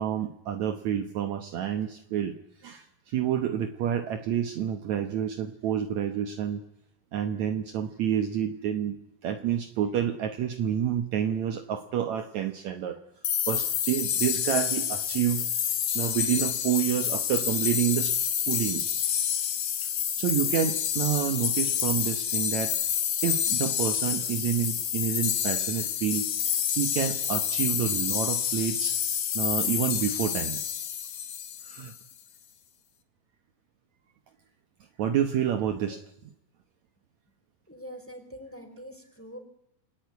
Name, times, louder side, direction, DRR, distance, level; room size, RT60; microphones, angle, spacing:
voice 1, 0.0-6.6 7.1-9.0 9.2-13.0 13.5-18.2 18.5-18.8 19.8-19.9 20.2-22.8 23.2-29.0 29.4-30.6 31.6-31.9 35.0-36.0, right 9 dB, 65° right, 8 dB, 2.3 m, -29 dB
sound 1, 13.2-31.9, left 9 dB, 60° left, 2.5 m, -28 dB
voice 2, 37.7-39.4, equal, 5° left, 6 dB, 4.3 m, -44 dB
28.5 x 19.5 x 9.5 m, 0.80 s
omnidirectional pair, 3.9 m